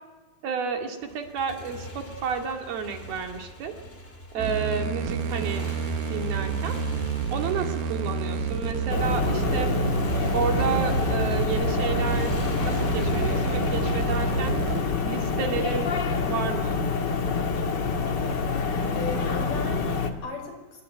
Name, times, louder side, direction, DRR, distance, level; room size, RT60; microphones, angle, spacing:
voice 1, 0.4-3.8 4.3-5.8 6.1-6.8 7.3-9.7 10.3-12.3 12.6-14.6 15.0-15.9 16.3-16.8, right 6 dB, 75° right, 4 dB, 4.5 m, -31 dB
Motorcycle, 1.0-16.2, left 1 dB, 15° left, 3.2 m, -42 dB
voice 2, 4.4-4.7 18.9-20.8, left 4 dB, 60° left, 4 dB, 7.0 m, -37 dB
sound 1, 4.4-14.8, right 6 dB, 60° right, 2.5 m, -29 dB
sound 2, 8.9-20.1, left 4 dB, 40° left, 1.8 m, -27 dB
27.0 x 22.0 x 9.6 m, 1.2 s
omnidirectional pair, 4.4 m